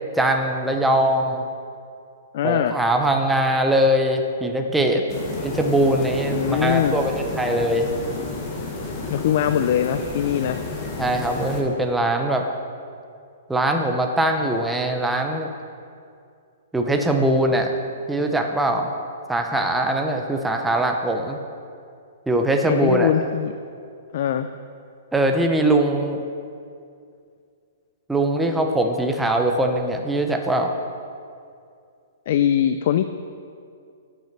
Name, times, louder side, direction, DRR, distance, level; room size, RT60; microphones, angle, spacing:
voice 1, 0.1-1.5 2.4-5.0 5.4-7.9 11.0-12.5 13.5-15.5 16.7-17.7 18.1-18.9 19.3-21.4 22.3-23.1 25.1-26.2 28.1-30.7, right 1 dB, 5° right, 3 dB, 0.6 m, -21 dB
voice 2, 2.3-2.7 6.3-7.0 9.1-10.6 22.7-23.5 24.1-24.5 32.3-33.0, left 10 dB, 55° left, 9 dB, 0.3 m, -21 dB
sound 1, 5.1-11.6, left 3 dB, 30° left, 1.4 m, -31 dB
8.5 x 6.0 x 5.9 m, 2.4 s
hypercardioid pair, 150°, 0 cm